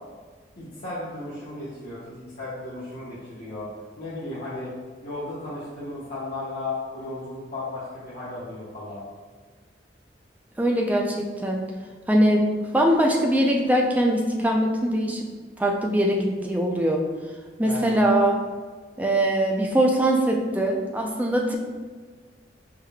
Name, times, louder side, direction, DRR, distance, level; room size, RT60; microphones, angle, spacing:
voice 1, 0.6-3.7 4.0-4.7 5.0-9.0 17.6-18.1, left 2 dB, 55° left, -11 dB, 1.0 m, -35 dB
voice 2, 10.6-11.6 12.1-12.5 12.7-15.3 15.6-17.0 17.6-18.4 19.0-21.6, right 1 dB, 10° right, 0 dB, 0.4 m, -22 dB
4.8 x 3.6 x 2.2 m, 1.5 s
head